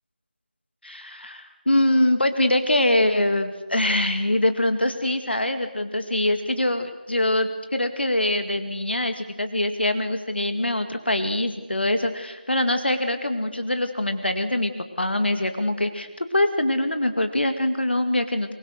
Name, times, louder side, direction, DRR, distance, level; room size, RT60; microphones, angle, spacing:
voice 1, 0.8-14.7 15.0-18.5, left 1 dB, 85° left, 7 dB, 2.2 m, -23 dB
25.0 x 23.5 x 6.6 m, 1.2 s
figure-of-eight pair, 165°, 6 cm